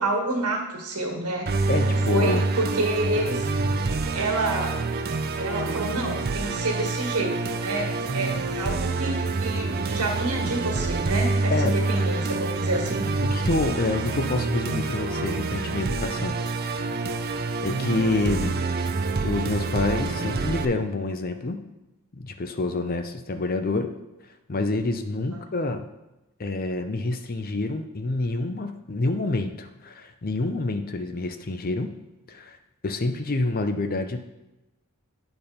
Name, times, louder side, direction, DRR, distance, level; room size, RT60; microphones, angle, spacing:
voice 1, 0.0-3.5 4.0-4.8 5.4-13.1 25.3-25.4, right 2 dB, 90° right, 1 dB, 1.7 m, -29 dB
Musical instrument, 1.5-20.7, right 3 dB, 45° right, 0.5 m, -27 dB
voice 2, 1.7-2.4 11.5-11.7 13.2-16.4 16.6-17.0 17.6-18.7 19.2-21.6 22.1-23.9 24.5-25.9 26.4-31.9 32.3-32.6 32.8-34.2, left 2 dB, 40° left, 7 dB, 0.6 m, -27 dB
9.0 x 4.3 x 5.1 m, 0.98 s
head